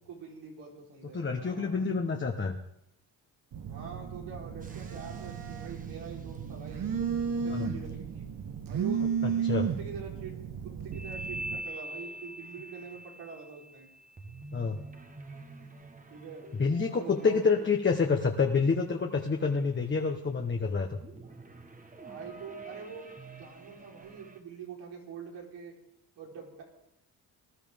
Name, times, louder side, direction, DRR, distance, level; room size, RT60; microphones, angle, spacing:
voice 1, 0.1-1.9 3.7-6.9 7.4-8.3 8.7-10.3 10.6-13.9 15.6-15.8 16.1-16.5 16.8-17.7 22.0-23.1 23.4-25.7 26.2-26.6, right 6 dB, 90° right, -2 dB, 4.4 m, -45 dB
voice 2, 1.1-2.6 7.5-7.7 9.4-9.7 14.5-14.8 16.6-21.0, left 5 dB, 30° left, 3 dB, 1.2 m, -28 dB
Telephone, 3.5-11.6, right 7 dB, 55° right, 1.3 m, -34 dB
sound 1, 4.6-6.5 10.9-18.2 18.7-20.3 20.9-24.4, right 1 dB, 20° right, 1.3 m, -46 dB
20.0 x 12.0 x 3.6 m, 0.82 s
cardioid pair, 90°, 41 cm